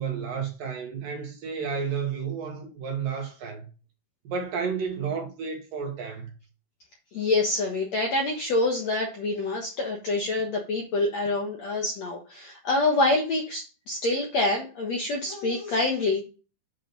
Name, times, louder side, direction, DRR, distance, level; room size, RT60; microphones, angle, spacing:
voice 1, 0.0-3.7 4.2-6.3, right 6 dB, 60° right, 2.8 m, -31 dB
voice 2, 7.1-16.2, left 2 dB, 60° left, 1.8 m, -26 dB
8.3 x 5.0 x 5.4 m
omnidirectional pair, 4.9 m